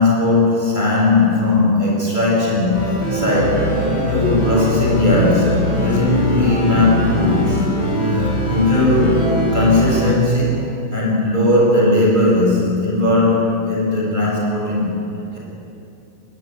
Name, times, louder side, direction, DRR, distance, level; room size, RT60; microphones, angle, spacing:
voice 1, 0.0-2.8 3.1-3.7 4.1-7.6 8.5-9.2 9.5-10.6 10.9-15.0, left 2 dB, 10° right, -4 dB, 7.5 m, -17 dB
sound 1, 2.7-10.1, equal, 30° left, 8.5 m, -21 dB
21.5 x 19.0 x 9.4 m, 2.7 s
omnidirectional pair, 4.0 m